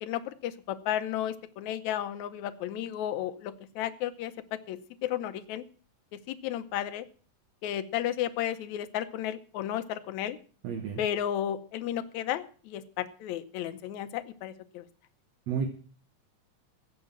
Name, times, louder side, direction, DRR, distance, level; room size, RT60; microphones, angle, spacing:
voice 1, 0.0-5.6 6.1-7.1 7.6-10.4 11.0-14.8, left 11 dB, 70° left, 10 dB, 2.1 m, -33 dB
voice 2, 10.6-11.0 15.5-15.7, right 7 dB, 65° right, 7 dB, 2.1 m, -31 dB
14.5 x 7.9 x 7.4 m, 0.42 s
omnidirectional pair, 3.6 m